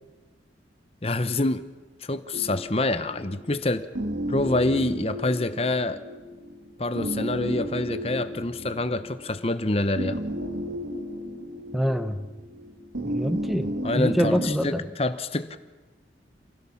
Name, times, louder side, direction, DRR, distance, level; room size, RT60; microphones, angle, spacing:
voice 1, 1.0-1.6 2.0-3.9 4.3-6.0 6.8-10.2 13.8-15.6, left 2 dB, 30° left, 11 dB, 0.9 m, -26 dB
sound 1, 2.3-14.7, equal, 85° right, 2.1 m, -34 dB
voice 2, 11.7-12.3 13.0-14.9, equal, ahead, 9 dB, 1.0 m, -26 dB
28.0 x 16.5 x 7.2 m, 1.3 s
head